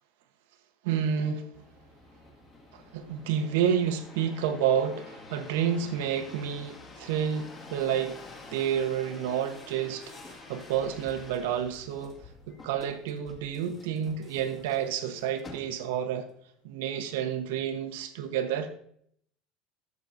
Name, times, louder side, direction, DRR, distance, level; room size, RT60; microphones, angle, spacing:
voice 1, 0.8-1.5 2.7-8.2 8.5-12.2 12.5-16.3 16.6-18.7, right 8 dB, 90° right, 1.0 m, -29 dB
sound 1, 1.5-16.1 16.7-17.2, left 2 dB, 25° left, 1.8 m, -49 dB
13.5 x 7.1 x 2.7 m
cardioid pair, 155°, 0 cm